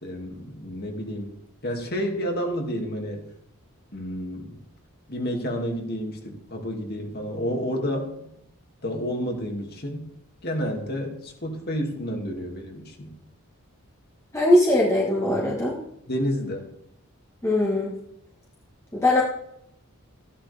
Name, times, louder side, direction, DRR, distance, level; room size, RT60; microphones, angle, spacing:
voice 1, 0.0-1.4 1.6-3.2 3.9-4.6 5.1-8.3 8.8-10.0 10.4-13.1 16.1-16.7, equal, 45° left, 2 dB, 2.6 m, -30 dB
voice 2, 14.3-15.8 17.4-17.9 18.9-19.2, left 1 dB, 15° left, -4 dB, 1.8 m, -20 dB
15.0 x 11.0 x 3.6 m, 0.76 s
head